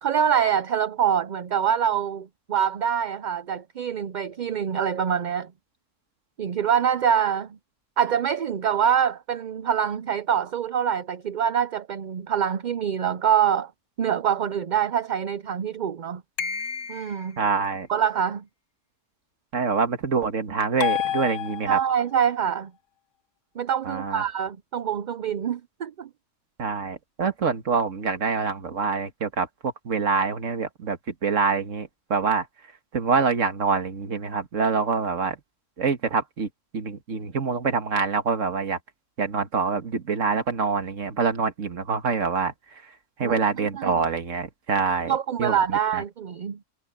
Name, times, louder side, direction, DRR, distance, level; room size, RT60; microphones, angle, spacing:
voice 1, 0.0-5.5 6.4-7.6 8.0-13.7 14.0-16.2 16.9-17.4 17.9-18.4 21.7-22.7 23.6-26.1 43.2-44.0 45.1-46.6, right 8 dB, 50° right, 0.6 m, -25 dB
sound 1, 16.4-17.3 20.8-22.0, left 9 dB, 80° left, 1.3 m, -29 dB
voice 2, 17.4-17.9 19.5-21.8 23.9-24.2 26.6-32.4 32.9-35.4 35.8-36.5 36.7-38.8 39.2-42.5 43.2-45.1 45.4-45.6 45.9-46.0, right 5 dB, 80° right, 2.0 m, -25 dB
omnidirectional pair, 1.3 m